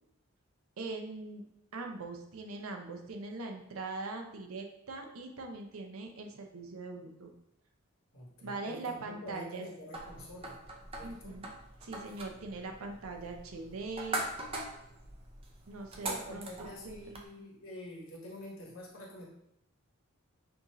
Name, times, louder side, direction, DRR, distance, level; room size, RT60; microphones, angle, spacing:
voice 1, 0.8-1.4 1.7-7.3 8.4-9.6 11.0-11.5 11.8-14.3 15.7-17.0, right 3 dB, 80° right, 3 dB, 0.7 m, -41 dB
voice 2, 8.1-10.6 11.0-11.4 16.0-19.3, left 1 dB, 65° left, -3 dB, 1.4 m, -47 dB
sound 1, 9.9-17.3, right 2 dB, 25° right, 0.6 m, -42 dB
6.1 x 2.7 x 3.0 m, 0.81 s
head